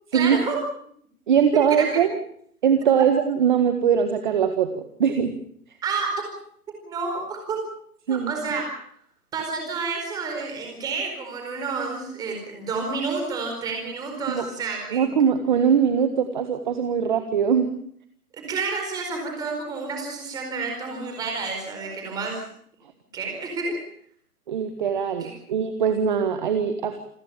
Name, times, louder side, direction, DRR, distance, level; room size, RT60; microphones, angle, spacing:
voice 1, 0.1-0.6 1.7-2.0 5.8-6.1 6.8-7.6 8.1-8.7 9.3-15.0 18.3-22.4 23.1-23.8 25.2-25.3, right 4 dB, 10° right, 2 dB, 4.6 m, -29 dB
voice 2, 1.3-2.1 2.6-5.3 8.1-8.3 14.3-14.4 14.9-17.7 24.5-26.9, right 7 dB, 30° right, 7 dB, 1.7 m, -21 dB
28.0 x 14.5 x 8.9 m, 0.64 s
hypercardioid pair, 175°, 45 cm